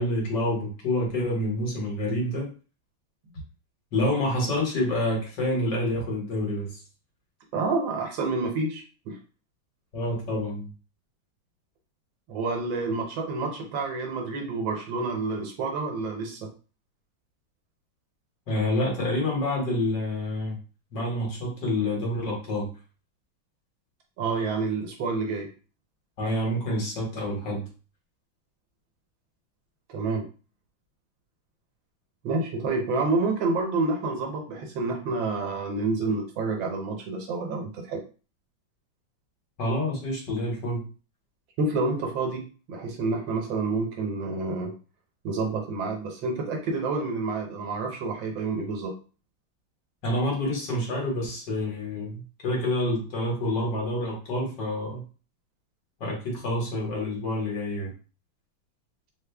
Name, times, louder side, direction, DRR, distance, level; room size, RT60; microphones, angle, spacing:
voice 1, 0.0-2.5 3.9-6.8 9.9-10.7 18.5-20.6 20.9-22.7 26.2-27.7 39.6-40.8 50.0-55.0 56.0-57.9, left 1 dB, 65° left, -2 dB, 1.8 m, -28 dB
voice 2, 7.5-9.2 12.3-16.5 24.2-25.5 29.9-30.2 32.2-38.0 41.6-44.8 45.2-48.9, right 3 dB, 70° right, 2 dB, 1.5 m, -28 dB
3.7 x 2.1 x 3.3 m, 0.36 s
omnidirectional pair, 2.2 m